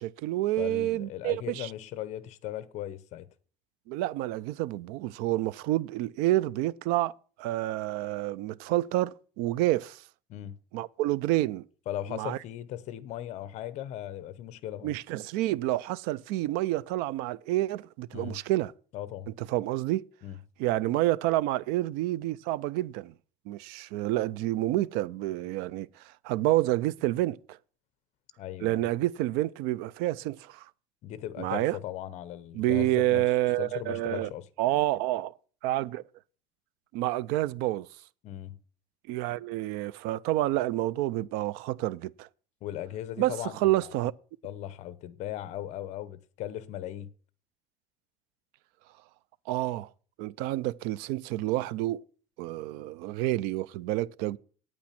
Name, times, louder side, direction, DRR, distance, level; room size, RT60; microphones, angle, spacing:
voice 1, 0.0-1.7 3.9-7.1 7.4-10.0 10.7-11.6 12.1-12.4 14.8-18.7 19.4-20.0 20.6-23.1 23.5-25.9 26.2-27.4 28.6-30.7 31.4-31.8 32.6-34.3 34.6-35.3 35.6-36.0 36.9-37.9 39.1-42.3 43.2-44.1 49.5-49.9 50.2-52.0 52.4-54.4, right 16 dB, 85° right, 0.4 m, -28 dB
voice 2, 0.6-3.3 10.3-10.6 11.9-14.9 18.1-18.4 18.9-19.3 20.2-20.4 28.4-28.9 31.0-33.2 33.6-34.5 38.2-38.6 42.6-43.9 44.4-47.1, left 12 dB, 45° left, 0.8 m, -38 dB
9.3 x 8.8 x 5.8 m
cardioid pair, 175°, 16 cm